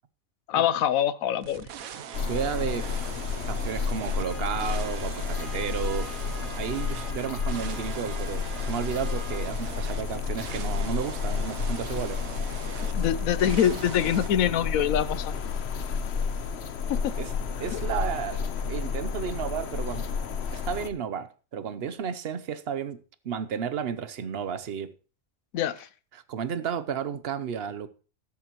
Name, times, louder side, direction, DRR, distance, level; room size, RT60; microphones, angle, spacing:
voice 1, 0.5-1.7 12.8-15.3 16.9-17.1 17.7-17.8 25.5-25.9, left 10 dB, 75° left, 1.1 m, -25 dB
sound 1, 1.4-14.3, right 8 dB, 75° right, 1.2 m, -42 dB
sound 2, 2.1-20.9, left 5 dB, 55° left, 1.0 m, -31 dB
voice 2, 2.3-6.2 6.6-12.2 17.2-17.3 17.6-20.1 20.5-23.0 23.2-24.9 26.1-27.9, right 7 dB, 50° right, 0.9 m, -33 dB
Trumpet, 4.2-9.5, right 2 dB, 35° right, 2.3 m, -46 dB
13.0 x 12.5 x 3.0 m
omnidirectional pair, 1.5 m